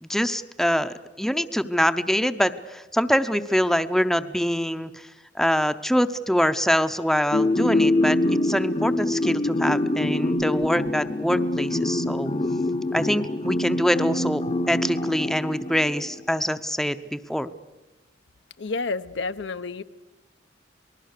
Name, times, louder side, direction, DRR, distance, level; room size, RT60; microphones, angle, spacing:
voice 1, 0.0-5.1 5.3-12.3 12.9-17.5, equal, ahead, 10 dB, 0.7 m, -24 dB
sound 1, 7.3-16.1, left 1 dB, 35° left, 0.8 m, -25 dB
voice 2, 18.6-19.8, left 3 dB, 75° left, 11 dB, 0.7 m, -30 dB
27.0 x 20.0 x 6.6 m, 1.1 s
head